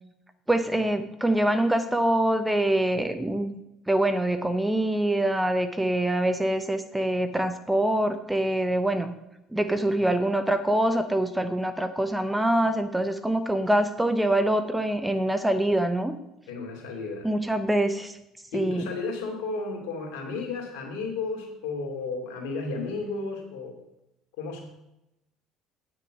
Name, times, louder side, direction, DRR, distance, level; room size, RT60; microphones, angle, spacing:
voice 1, 0.5-3.6 3.9-9.1 9.5-16.1 17.2-18.2 18.5-18.9, right 1 dB, 10° right, 9 dB, 0.9 m, -25 dB
voice 2, 16.5-17.3 18.5-23.8 24.4-24.6, left 3 dB, 65° left, 2 dB, 2.6 m, -33 dB
9.2 x 6.5 x 6.4 m, 0.86 s
hypercardioid pair, 60°, 0 cm